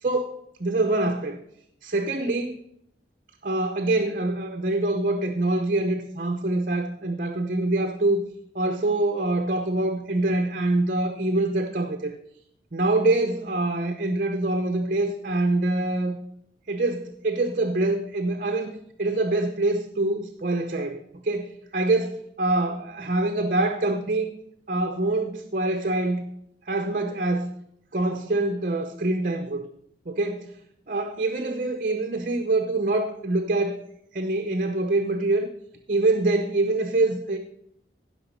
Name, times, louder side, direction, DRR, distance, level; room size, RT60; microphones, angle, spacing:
voice 1, 0.0-1.4 1.8-2.6 3.4-8.2 8.5-12.1 12.7-16.2 16.7-24.3 24.7-26.3 26.7-27.5 27.9-29.6 30.1-30.5 30.9-33.8 34.1-35.5 35.9-37.4, right 2 dB, 45° right, 6 dB, 0.8 m, -25 dB
16.0 x 5.9 x 5.5 m, 0.75 s
head